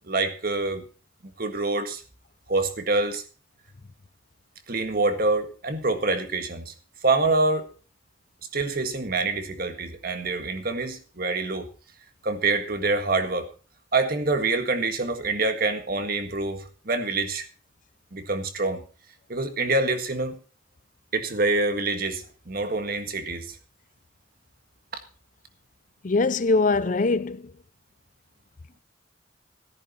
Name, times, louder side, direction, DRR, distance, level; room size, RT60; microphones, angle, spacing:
voice 1, 0.1-0.8 1.4-2.0 2.5-3.2 4.7-6.7 7.0-7.7 8.5-11.7 12.2-13.5 13.9-17.4 18.1-18.8 19.3-20.4 21.1-23.6, right 3 dB, 50° right, 1.7 m, -26 dB
voice 2, 26.0-27.4, left 3 dB, 40° left, 0.5 m, -22 dB
14.0 x 10.5 x 4.1 m
head